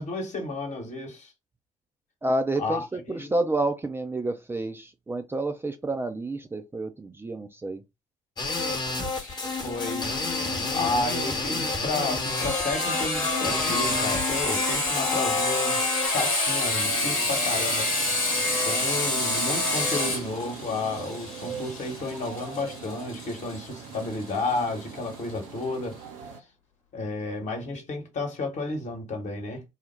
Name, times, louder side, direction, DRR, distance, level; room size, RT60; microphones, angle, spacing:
voice 1, 0.0-1.3 2.6-3.3 9.6-10.1 10.7-17.9 18.6-26.0 26.9-29.6, left 2 dB, 45° left, 1.2 m, -32 dB
voice 2, 2.2-7.8, right 2 dB, 10° right, 0.4 m, -29 dB
sound 1, 8.4-16.1, left 3 dB, 25° left, 0.9 m, -30 dB
Sawing, 9.1-24.6, left 2 dB, 75° left, 1.0 m, -28 dB
sound 2, 16.7-26.4, right 6 dB, 65° right, 0.6 m, -41 dB
3.9 x 2.1 x 3.2 m
figure-of-eight pair, 50°, 17 cm